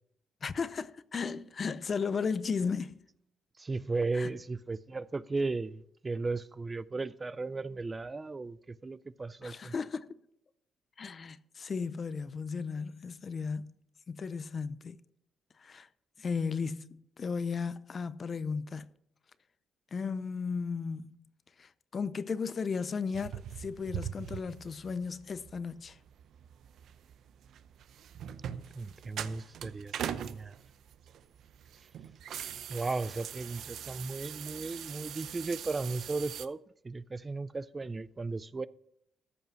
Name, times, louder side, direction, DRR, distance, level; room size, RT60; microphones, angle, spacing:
voice 1, 0.4-3.0 4.1-4.3 9.4-10.1 11.0-13.7 14.1-15.0 15.6-15.9 16.2-18.9 19.9-21.3 21.6-26.0, left 5 dB, 45° left, 0.6 m, -35 dB
voice 2, 3.6-9.7 28.7-30.5 32.7-36.6 36.8-38.7, right 3 dB, 25° right, 0.4 m, -36 dB
sound 1, 23.1-36.5, right 9 dB, 75° right, 0.6 m, -42 dB
14.0 x 5.5 x 5.7 m
cardioid pair, 90°, 0 cm